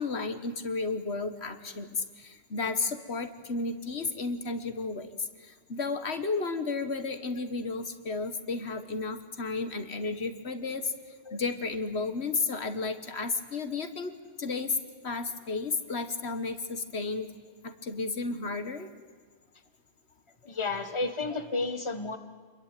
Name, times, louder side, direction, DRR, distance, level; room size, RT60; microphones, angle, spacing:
voice 1, 0.0-14.8 15.0-17.3 17.6-18.9, left 4 dB, 75° left, 9 dB, 1.8 m, -33 dB
voice 2, 20.4-22.2, left 3 dB, 25° left, 8 dB, 1.6 m, -32 dB
27.5 x 22.5 x 9.2 m, 1.5 s
omnidirectional pair, 1.1 m